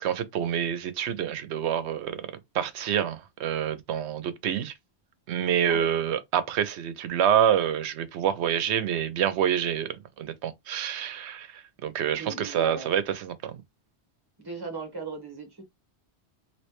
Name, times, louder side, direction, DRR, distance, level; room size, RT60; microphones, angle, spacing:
voice 1, 0.0-4.7 5.3-13.6, right 9 dB, 80° right, 0.9 m, -27 dB
voice 2, 12.1-12.9 14.4-15.6, right 4 dB, 20° right, 1.2 m, -37 dB
3.2 x 2.9 x 2.9 m
omnidirectional pair, 1.1 m